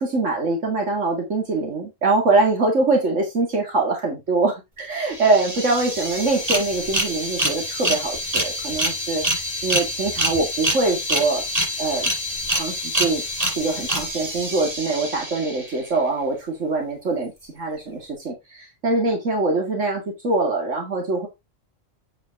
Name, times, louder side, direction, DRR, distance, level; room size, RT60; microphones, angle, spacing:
voice 1, 0.0-11.4 11.8-12.1 12.5-13.2 13.5-21.3, right 3 dB, 85° right, 1 dB, 2.5 m, -23 dB
sound 1, 4.8-4.9 5.1-15.9, equal, 30° right, 5.4 m, -26 dB
9.0 x 5.5 x 3.4 m, 0.21 s
omnidirectional pair, 1.2 m